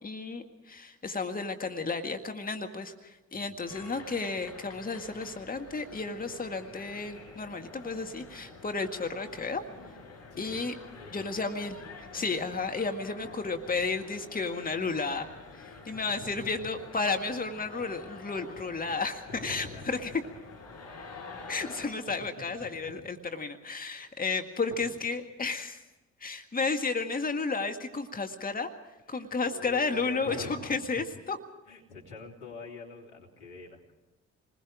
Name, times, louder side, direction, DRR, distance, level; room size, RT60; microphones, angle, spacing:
voice 1, 0.0-9.6 10.4-10.7 11.1-11.8 12.1-15.3 15.5-20.1 21.5-25.8 26.2-28.7 29.1-31.4, left 4 dB, 25° left, 5 dB, 1.9 m, -32 dB
voice 2, 3.3-3.7 10.3-10.7 11.0-11.5 15.6-16.7 19.3-20.1 21.6-23.1 23.9-24.2 24.8-24.9 29.1-30.7 30.9-31.0 31.7-33.9, left 3 dB, 80° left, -1 dB, 3.3 m, -46 dB
sound 1, 3.7-21.9, left 3 dB, 50° left, 5.6 m, -48 dB
28.5 x 21.0 x 5.0 m, 1.1 s
hypercardioid pair, 45°, 32 cm